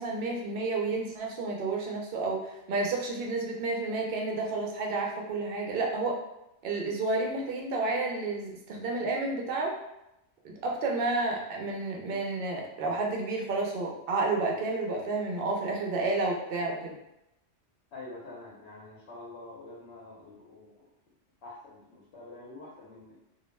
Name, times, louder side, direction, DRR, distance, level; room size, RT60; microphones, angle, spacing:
voice 1, 0.0-6.2 6.6-9.7 10.4-16.9, right 3 dB, 60° right, 0 dB, 0.7 m, -31 dB
voice 2, 17.9-20.9 21.4-23.2, left 2 dB, 65° left, -6 dB, 0.9 m, -46 dB
2.3 x 2.1 x 3.1 m, 0.87 s
omnidirectional pair, 1.2 m